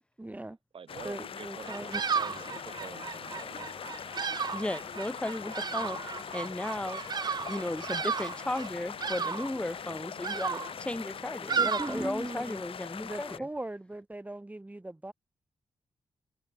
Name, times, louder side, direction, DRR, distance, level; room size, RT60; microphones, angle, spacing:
voice 1, 0.2-0.6 1.0-2.0 11.6-12.6 13.0-15.1, right 1 dB, 15° right, 1.3 m, -39 dB
voice 2, 0.7-4.0, right 6 dB, 65° right, 8.0 m, -48 dB
sound 1, 0.9-13.4, left 8 dB, 65° left, 1.0 m, -42 dB
Bird vocalization bird call bird song, 1.6-12.6, right 6 dB, 45° right, 0.6 m, -35 dB
voice 3, 4.5-6.0 6.3-7.0 7.5-13.5, left 1 dB, 10° left, 1.2 m, -35 dB
cardioid pair, 70°, 10 cm